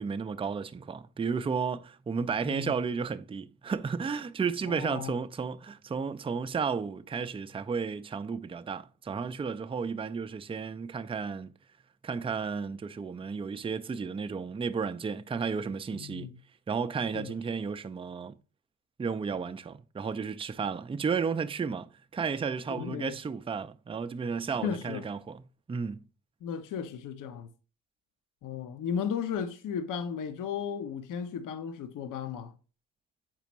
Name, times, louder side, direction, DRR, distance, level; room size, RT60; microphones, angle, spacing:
voice 1, 0.0-11.5 12.0-16.3 16.7-18.3 19.0-25.4 25.7-26.0, right 5 dB, 15° right, 0.5 m, -33 dB
voice 2, 4.7-5.1 15.9-16.4 17.1-17.3 22.7-23.2 24.6-25.0 26.4-27.5 28.4-32.5, left 7 dB, 50° left, 0.8 m, -35 dB
7.5 x 5.0 x 3.0 m
hypercardioid pair, 45°, 40 cm